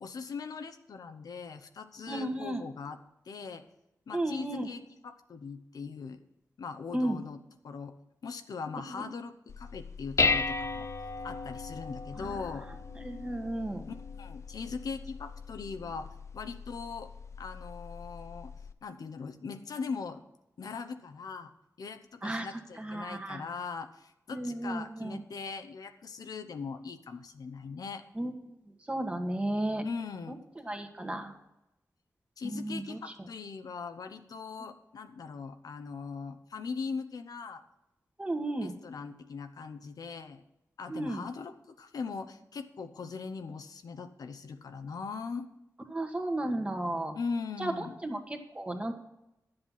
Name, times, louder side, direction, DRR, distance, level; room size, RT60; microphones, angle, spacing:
voice 1, 0.0-3.0 3.3-3.6 4.1-6.2 6.6-7.4 7.6-7.9 8.2-10.9 11.2-12.7 13.9-16.1 16.3-17.1 17.4-18.5 18.8-20.2 20.6-21.5 21.8-28.0 29.8-30.4 32.4-37.6 38.6-40.4 40.8-45.5 47.1-48.0, left 5 dB, 85° left, 8 dB, 0.8 m, -40 dB
voice 2, 2.1-2.6 4.1-4.7 6.9-7.2 8.8-9.0 12.2-12.4 12.9-13.9 22.2-22.5 22.8-23.4 24.3-25.2 28.1-28.5 28.9-29.8 30.3-31.3 32.4-33.0 38.2-38.7 40.9-41.2 45.9-47.1 47.6-48.9, right 1 dB, 20° right, 4 dB, 1.5 m, -34 dB
Dishes pots and pans, 9.5-18.7, left 4 dB, 50° left, 0.5 m, -36 dB
11.5 x 7.9 x 5.6 m, 0.90 s
wide cardioid pair, 105°, 6 cm